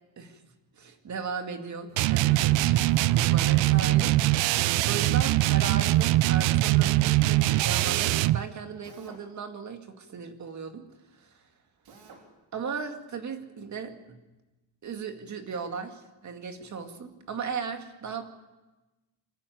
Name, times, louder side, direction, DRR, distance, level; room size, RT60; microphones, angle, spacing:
voice 1, 0.8-2.9 3.2-4.5 4.8-10.9 11.1-11.3 12.5-14.2 14.8-18.2, right 5 dB, 40° right, 6 dB, 2.2 m, -37 dB
sound 1, 2.0-8.4, right 17 dB, 80° right, 0.6 m, -22 dB
Drill, 2.9-3.3 5.9-6.3 8.8-9.3 11.8-12.3, right 4 dB, 55° right, 4.1 m, -51 dB
24.5 x 13.5 x 9.3 m, 1.1 s
cardioid pair, 135°, 44 cm